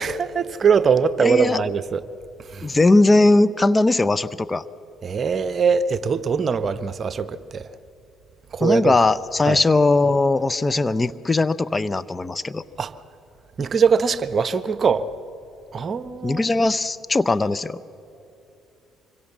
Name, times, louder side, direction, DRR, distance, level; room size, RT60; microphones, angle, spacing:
voice 1, 0.0-2.0 2.5-2.7 5.0-7.7 8.5-8.9 9.5-9.6 12.8-12.9 13.6-15.1 15.7-16.4, right 6 dB, 45° right, 0.9 m, -21 dB
voice 2, 1.2-1.6 2.6-4.6 8.6-12.6 16.2-17.8, left 2 dB, 25° left, 0.7 m, -19 dB
25.5 x 22.5 x 7.4 m
hypercardioid pair, 55°, 0 cm